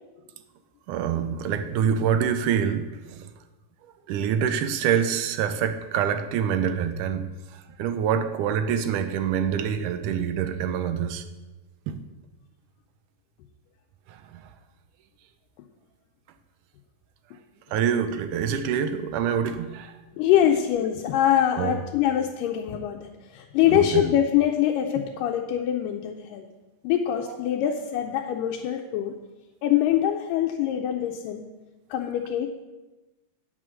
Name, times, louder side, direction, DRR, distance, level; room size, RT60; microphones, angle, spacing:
voice 1, 0.9-3.3 4.1-11.2 11.9-12.0 14.1-14.5 17.7-20.0 21.6-21.8 23.7-24.0 27.3-27.4, right 8 dB, 80° right, 9 dB, 2.0 m, -26 dB
voice 2, 20.1-26.5 26.8-29.2 29.6-31.5 31.9-32.5, left 10 dB, 85° left, 1 dB, 2.2 m, -24 dB
9.3 x 6.2 x 6.2 m, 1.2 s
omnidirectional pair, 3.9 m